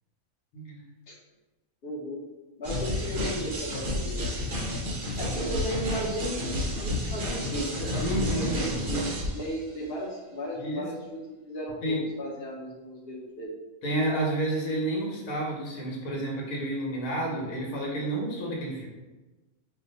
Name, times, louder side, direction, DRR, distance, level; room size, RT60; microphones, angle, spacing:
voice 1, 1.8-2.2 2.6-4.2 5.2-13.5, equal, 55° left, -3 dB, 0.7 m, -35 dB
sound 1, 2.6-9.5, left 1 dB, 65° right, 0.5 m, -31 dB
voice 2, 8.0-8.8 10.6-10.9 11.8-12.0 13.8-18.9, right 1 dB, 75° left, -3 dB, 1.3 m, -30 dB
2.7 x 2.2 x 3.8 m, 1.1 s
omnidirectional pair, 1.6 m